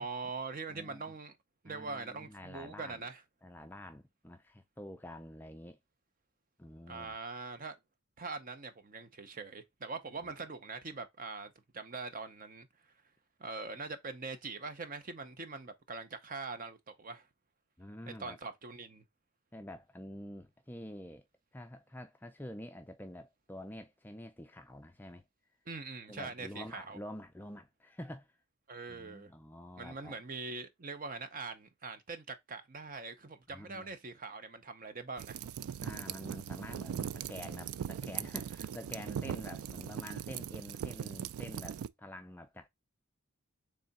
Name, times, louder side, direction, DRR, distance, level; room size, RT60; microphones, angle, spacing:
voice 1, 0.0-1.4 1.6-3.2 6.9-7.8 8.2-12.7 13.4-17.3 18.1-19.0 25.7-27.0 28.7-29.3 29.8-35.4, right 4 dB, 40° right, 0.7 m, -43 dB
voice 2, 0.7-1.0 1.6-3.0 3.4-5.8 6.6-7.2 17.8-18.4 19.5-21.2 21.5-25.2 26.1-28.3 28.9-30.1 33.5-33.9 35.8-42.7, left 1 dB, 10° left, 0.4 m, -47 dB
sound 1, 35.2-41.9, right 9 dB, 80° right, 0.3 m, -40 dB
3.7 x 3.4 x 4.0 m
head